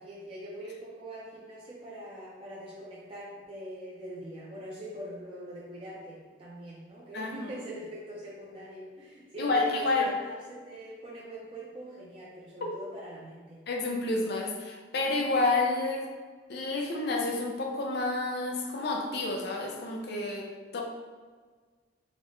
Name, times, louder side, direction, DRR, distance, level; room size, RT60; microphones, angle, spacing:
voice 1, 0.0-13.6, right 1 dB, 30° right, -6 dB, 0.5 m, -42 dB
voice 2, 9.4-10.1 12.6-12.7 13.7-16.1 16.5-20.8, left 3 dB, 65° left, 1 dB, 0.5 m, -29 dB
3.9 x 2.1 x 3.1 m, 1.5 s
head